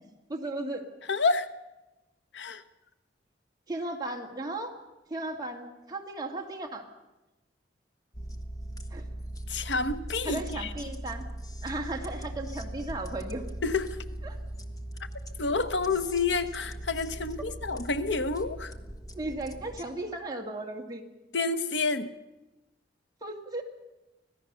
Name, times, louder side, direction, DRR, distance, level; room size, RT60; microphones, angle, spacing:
voice 1, 0.3-0.9 3.7-4.7 5.1-6.9 8.9-9.0 10.2-11.3 11.6-13.4 14.2-14.4 19.2-21.0 23.2-23.6, right 2 dB, 20° right, 1 dB, 2.3 m, -35 dB
voice 2, 1.1-1.5 2.3-2.6 9.5-10.7 13.6-14.0 15.4-18.7 21.3-22.1, left 4 dB, 80° left, 11 dB, 1.0 m, -29 dB
sound 1, 8.1-19.8, right 1 dB, 20° left, 1.3 m, -40 dB
25.5 x 17.0 x 6.9 m, 1.0 s
head